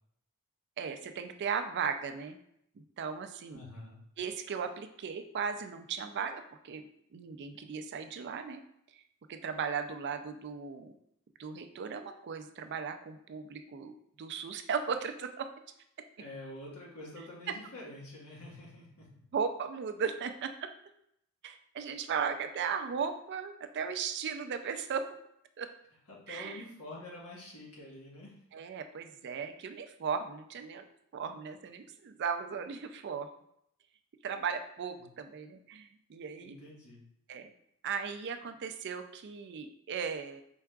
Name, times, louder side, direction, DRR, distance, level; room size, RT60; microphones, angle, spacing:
voice 1, 0.8-2.4 2.8-3.6 4.2-6.8 7.1-8.6 8.9-9.0 9.3-10.9 11.4-15.5 19.3-20.7 21.4-25.1 25.6-25.7 26.3-26.6 28.5-30.8 31.1-33.3 34.2-36.6 37.3-37.5 37.8-40.4, right 6 dB, 50° right, 8 dB, 0.4 m, -37 dB
voice 2, 3.5-4.0 16.2-19.1 26.1-28.4 36.4-37.1, left 1 dB, 85° left, -4 dB, 1.4 m, -47 dB
4.6 x 3.5 x 2.3 m, 0.73 s
head